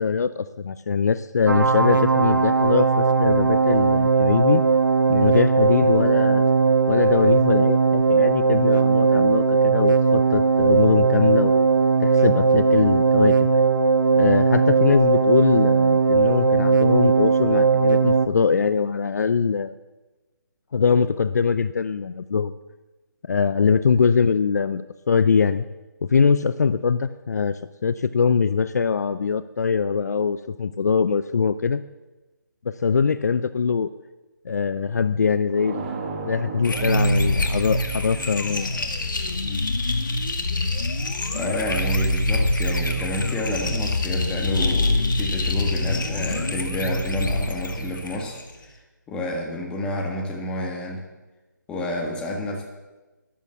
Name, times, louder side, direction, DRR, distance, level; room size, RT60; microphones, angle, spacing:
voice 1, 0.0-4.6 5.1-6.4 6.9-11.7 12.0-13.5 14.1-19.7 20.7-22.5 23.3-25.6 26.0-31.8 32.6-33.9 34.4-35.9 36.3-38.7, left 5 dB, 55° left, 14 dB, 0.5 m, -22 dB
sound 1, 1.5-18.3, right 5 dB, 85° right, 1.0 m, -18 dB
sound 2, 35.5-40.2, right 4 dB, 25° right, 1.8 m, -36 dB
sound 3, 36.6-48.6, left 1 dB, 75° left, 1.9 m, -25 dB
voice 2, 41.3-48.4 49.1-51.0 51.7-52.6, left 1 dB, 10° left, 1 dB, 1.5 m, -29 dB
13.0 x 10.5 x 7.2 m, 1.2 s
figure-of-eight pair, 160°, 11 cm